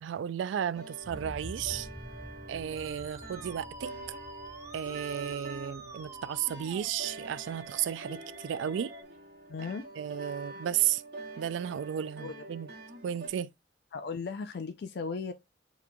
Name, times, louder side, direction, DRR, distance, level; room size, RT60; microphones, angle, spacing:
voice 1, 0.0-1.9 2.5-4.2 4.7-8.9 10.0-11.0 11.4-12.7 13.0-13.5, right 10 dB, 90° right, 0.3 m, -33 dB
sound 1, 0.7-13.3, right 2 dB, 60° right, 1.7 m, -46 dB
sound 2, 1.0-8.9 9.3-9.4, equal, 45° right, 1.5 m, -49 dB
Musical instrument, 2.8-9.0, right 2 dB, 15° right, 0.6 m, -48 dB
voice 2, 9.5-9.8 12.2-12.4 13.9-15.3, left 4 dB, 60° left, 0.4 m, -36 dB
7.0 x 3.1 x 2.2 m
head